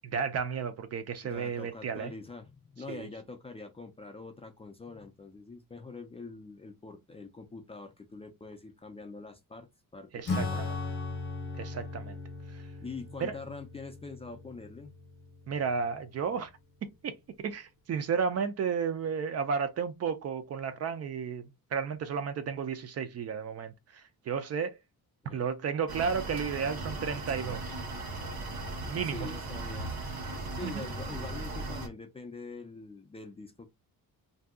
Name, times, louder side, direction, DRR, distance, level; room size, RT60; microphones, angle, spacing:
voice 1, 0.1-2.1 2.9-3.1 10.1-10.8 11.6-12.2 12.5-12.6 13.2-13.3 15.5-16.5 16.8-24.8 25.3-27.8 28.9-29.3 30.6-30.8, right 6 dB, 45° right, 0.4 m, -33 dB
voice 2, 1.2-10.7 12.8-14.9 25.2-25.5 29.0-29.9 30.5-33.7, left 3 dB, 20° left, 0.3 m, -44 dB
Acoustic guitar / Strum, 10.3-16.2, left 3 dB, 40° left, 0.7 m, -38 dB
sound 1, 25.9-31.9, right 2 dB, 80° right, 1.2 m, -37 dB
2.6 x 2.2 x 3.5 m
cardioid pair, 165°, 35 cm